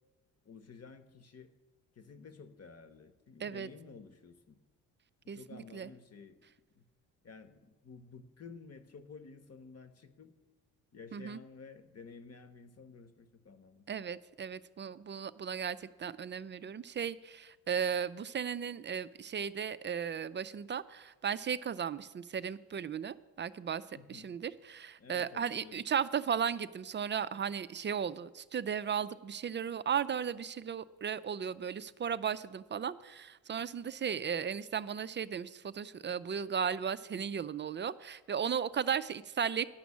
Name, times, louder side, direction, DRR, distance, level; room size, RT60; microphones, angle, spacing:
voice 1, 0.4-1.5 1.9-4.6 5.2-6.4 6.7-6.8 7.2-10.3 10.9-13.8 23.9-24.3 25.0-25.9, left 5 dB, 35° left, 11 dB, 1.1 m, -52 dB
voice 2, 5.3-5.9 11.1-11.4 13.9-23.8 24.1-39.6, right 7 dB, 25° right, 15 dB, 0.4 m, -36 dB
10.5 x 6.0 x 8.4 m, 1.2 s
hypercardioid pair, 50°, 44 cm